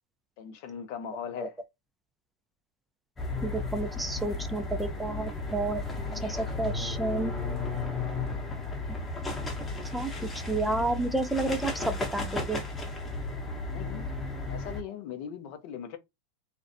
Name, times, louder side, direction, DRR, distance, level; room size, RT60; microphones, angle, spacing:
voice 1, 0.4-1.6 13.7-14.1 14.5-16.0, left 8 dB, 60° left, 0.5 m, -39 dB
sound 1, 3.2-14.8, left 3 dB, 15° left, 0.8 m, -34 dB
voice 2, 3.4-5.8 6.2-7.3 9.9-10.1 10.5-12.6, right 2 dB, 5° right, 0.3 m, -30 dB
2.4 x 2.1 x 2.5 m
hypercardioid pair, 115°, 0 cm